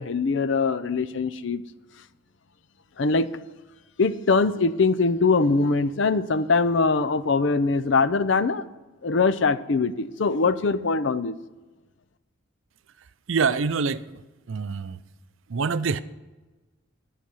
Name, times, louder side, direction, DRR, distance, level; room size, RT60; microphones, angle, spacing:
voice 1, 0.0-1.6 3.0-3.3 4.0-8.6 9.0-11.3, left 4 dB, 60° left, 0.6 m, -22 dB
voice 2, 13.3-14.0 14.5-15.0 15.5-16.0, right 5 dB, 70° right, 0.5 m, -25 dB
12.0 x 5.9 x 8.2 m
head